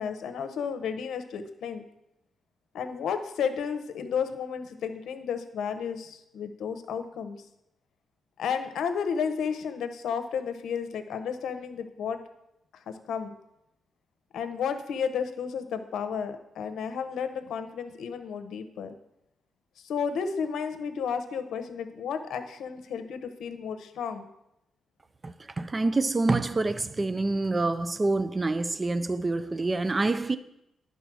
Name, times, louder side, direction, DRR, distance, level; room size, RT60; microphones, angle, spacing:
voice 1, 0.0-1.8 2.7-7.4 8.4-12.2 12.7-13.3 14.3-18.9 19.8-24.3, left 6 dB, 85° left, 0.8 m, -32 dB
voice 2, 25.2-30.4, right 2 dB, 25° right, 0.4 m, -27 dB
10.5 x 4.0 x 6.1 m
cardioid pair, 100°, 0 cm